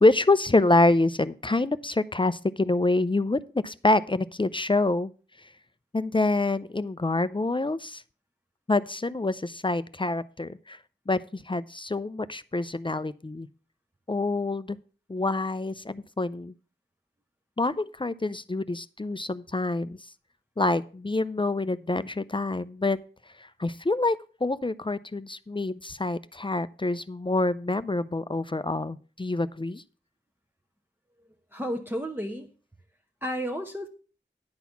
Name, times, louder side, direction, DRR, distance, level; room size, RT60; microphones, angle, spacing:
voice 1, 0.0-5.1 5.9-8.0 8.7-10.8 11.1-13.5 14.1-14.8 15.1-16.5 17.6-20.0 20.6-23.0 23.4-29.8, left 2 dB, 25° left, 15 dB, 0.5 m, -26 dB
voice 2, 31.5-32.5 33.2-33.9, equal, 10° right, 2 dB, 1.0 m, -32 dB
10.5 x 4.1 x 7.0 m, 0.39 s
wide cardioid pair, 45°, 20 cm